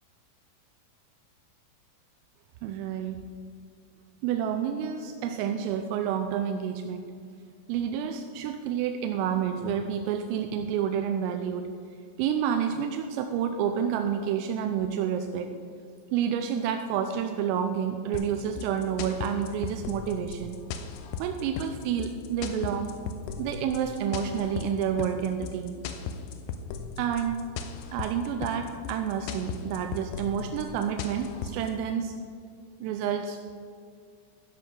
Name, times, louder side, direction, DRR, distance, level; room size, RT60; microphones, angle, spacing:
voice 1, 2.6-3.2 4.2-7.1 7.7-11.7 12.2-15.5 16.1-20.6 21.2-23.0 23.4-25.8 27.0-27.4 27.9-32.1 32.8-33.4, right 8 dB, 90° right, 5 dB, 3.2 m, -29 dB
sound 1, 18.1-31.7, left 6 dB, 80° left, 2.5 m, -37 dB
13.0 x 10.5 x 3.7 m, 2.2 s
omnidirectional pair, 5.8 m